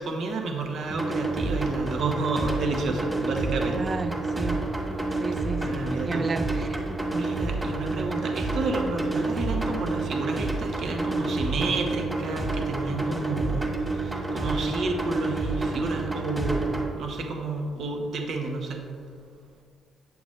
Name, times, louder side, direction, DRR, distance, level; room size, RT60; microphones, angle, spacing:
voice 1, 0.0-3.8 5.6-6.4 7.1-18.9, right 3 dB, 65° right, 1.0 m, -31 dB
sound 1, 0.9-16.9, right 2 dB, 15° right, 1.6 m, -29 dB
voice 2, 3.8-4.6 5.2-6.8, right 3 dB, 40° right, 0.4 m, -33 dB
8.7 x 6.9 x 3.2 m
cardioid pair, 90°, 0 cm